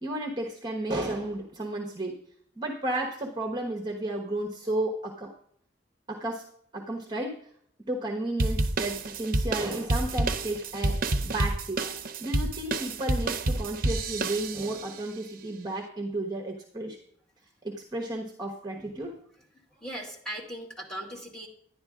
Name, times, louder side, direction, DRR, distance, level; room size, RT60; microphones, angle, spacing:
voice 1, 0.0-2.2 2.6-5.3 6.1-6.4 6.7-7.4 7.9-11.8 12.2-17.0 17.6-19.1, right 1 dB, 25° right, 1 dB, 1.1 m, -33 dB
sound 1, 8.4-14.9, right 2 dB, 55° right, 0.7 m, -29 dB
voice 2, 18.8-19.1 19.5-21.5, right 1 dB, 5° left, -1 dB, 2.4 m, -39 dB
11.0 x 10.5 x 3.7 m, 0.64 s
head